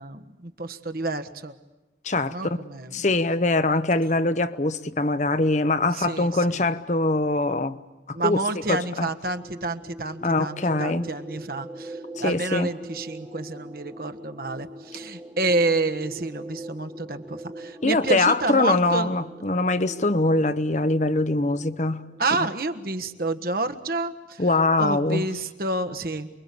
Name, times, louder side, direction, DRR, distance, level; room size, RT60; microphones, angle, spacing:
voice 1, 0.0-1.5 2.3-3.0 6.0-6.3 8.1-19.1 22.2-24.4 24.8-26.3, right 2 dB, 55° right, 1.5 m, -29 dB
voice 2, 2.0-2.6 2.9-7.8 8.1-8.4 8.7-9.1 10.2-11.1 12.2-12.7 17.8-22.0 24.4-25.3, left 2 dB, 40° left, 0.9 m, -23 dB
sound 1, 9.0-23.3, right 1 dB, 15° right, 1.4 m, -42 dB
28.5 x 22.5 x 8.5 m
head